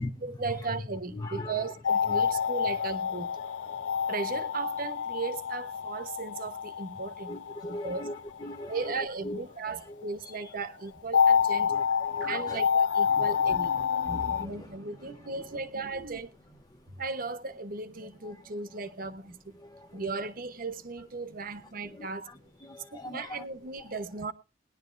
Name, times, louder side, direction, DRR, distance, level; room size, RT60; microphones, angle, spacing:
voice 1, 0.2-3.3 4.1-8.0 8.7-11.7 12.2-13.7 14.3-16.3 17.0-19.6 19.9-22.3 22.9-24.3, right 4 dB, 50° right, 1.0 m, -36 dB
voice 2, 1.1-1.6 2.1-2.4 3.7-4.0 7.3-9.4 9.7-10.0 10.2-10.3 11.7-12.6 13.1-13.3 14.0-14.7 18.2-18.4 19.6-20.0 21.9-23.4, left 1 dB, 20° left, 0.7 m, -40 dB
sound 1, 1.8-8.4 11.1-14.4, left 7 dB, 90° left, 0.5 m, -28 dB
sound 2, 12.2-17.1, right 3 dB, 80° right, 1.0 m, -48 dB
20.5 x 10.5 x 2.5 m
head